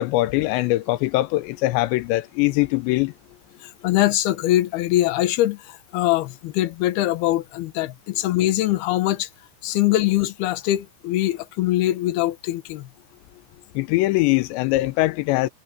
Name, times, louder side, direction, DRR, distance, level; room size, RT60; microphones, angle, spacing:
voice 1, 0.0-3.1 13.8-15.5, left 19 dB, 85° left, 2.9 m, -22 dB
voice 2, 3.6-9.3 9.6-12.9, left 15 dB, 70° left, 3.0 m, -22 dB
omnidirectional pair, 5.0 m